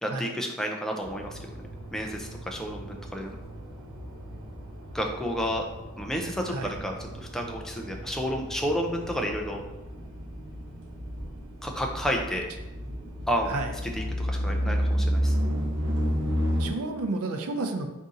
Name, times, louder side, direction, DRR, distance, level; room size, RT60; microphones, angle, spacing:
voice 1, 0.0-1.5 1.9-3.4 4.9-5.6 6.0-9.6 11.6-12.5 13.3-13.5 13.8-15.3, equal, ahead, 1 dB, 0.3 m, -31 dB
sound 1, 1.0-16.7, equal, 55° right, 1.0 m, -32 dB
voice 2, 16.6-17.9, right 2 dB, 90° right, 6 dB, 0.5 m, -31 dB
4.0 x 2.7 x 3.6 m, 1.1 s
head